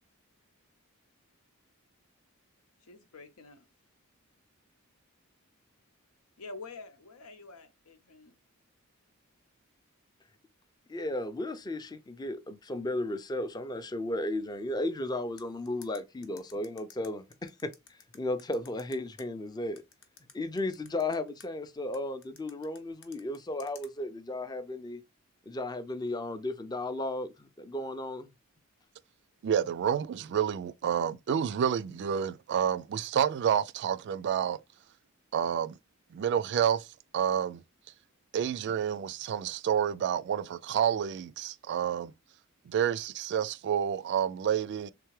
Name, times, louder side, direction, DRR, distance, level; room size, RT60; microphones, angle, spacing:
voice 1, 2.8-3.7 6.4-8.3, left 3 dB, 90° left, 0.8 m, -47 dB
voice 2, 10.9-17.7 18.1-19.8 20.3-25.0 25.5-28.3, left 1 dB, 20° left, 0.4 m, -34 dB
sound 1, 15.4-19.2 19.8-21.5 21.9-23.9, left 8 dB, 60° left, 0.7 m, -53 dB
voice 3, 29.4-34.6 35.3-35.7 36.1-36.9 37.1-37.6 38.3-42.1 42.7-44.9, right 8 dB, 55° right, 0.3 m, -29 dB
3.6 x 3.4 x 3.1 m
head